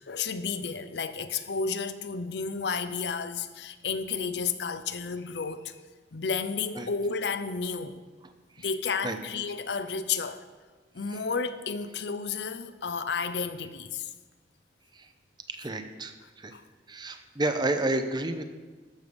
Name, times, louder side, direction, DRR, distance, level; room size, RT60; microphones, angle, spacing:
voice 1, 0.1-5.8 6.1-8.0 8.6-10.4 10.9-14.1 16.5-16.6, left 5 dB, 70° left, 11 dB, 0.6 m, -32 dB
voice 2, 15.5-16.5 16.9-18.4, right 2 dB, 25° right, 8 dB, 0.7 m, -31 dB
13.0 x 6.8 x 5.2 m, 1.3 s
head